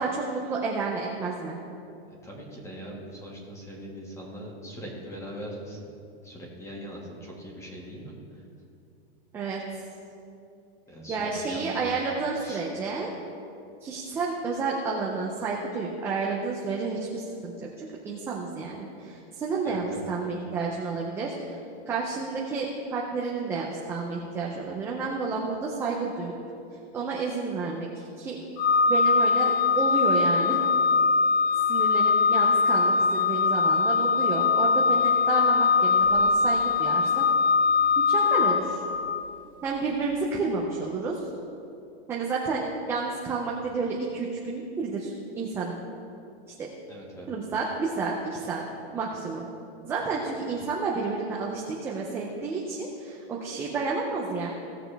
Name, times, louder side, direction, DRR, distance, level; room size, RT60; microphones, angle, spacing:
voice 1, 0.0-1.6 9.3-9.6 11.1-13.1 13.8-21.6 21.9-26.4 26.9-28.4 28.9-30.6 31.7-37.3 38.0-38.8 39.6-41.2 42.1-45.8 46.5-46.7 47.3-48.6 48.9-49.5 49.8-54.5, right 4 dB, 10° right, -3 dB, 0.4 m, -30 dB
voice 2, 2.2-5.8 6.2-8.1 10.9-11.8 12.4-12.6 19.6-20.0 46.9-47.3, equal, 10° left, -2 dB, 1.7 m, -41 dB
Organ, 28.6-39.3, left 5 dB, 30° left, 0.7 m, -22 dB
17.5 x 6.8 x 3.3 m, 2.6 s
supercardioid pair, 165°, 32 cm